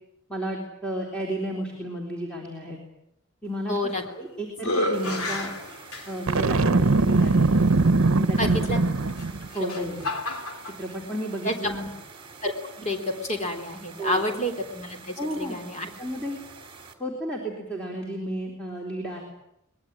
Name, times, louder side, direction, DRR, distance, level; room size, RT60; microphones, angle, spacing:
voice 1, 0.3-2.8 3.4-3.8 4.2-5.5 6.1-7.7 8.2-8.6 9.5-10.1 10.8-11.9 14.0-14.2 15.2-15.6 16.0-16.4 17.0-19.2, right 1 dB, 5° left, -2 dB, 3.8 m, -32 dB
voice 2, 3.7-4.0 8.4-8.8 9.6-9.9 11.4-11.8 12.4-15.9, left 1 dB, 30° left, 4 dB, 3.6 m, -29 dB
sound 1, 3.8-4.2 4.6-6.4 7.2-7.3 9.1-10.8, left 1 dB, 85° left, 2.9 m, -30 dB
sound 2, 4.9-16.9, right 4 dB, 25° right, 3.0 m, -47 dB
Boom, 6.3-9.5, right 3 dB, 65° right, 0.9 m, -21 dB
23.5 x 21.0 x 9.0 m, 0.83 s
head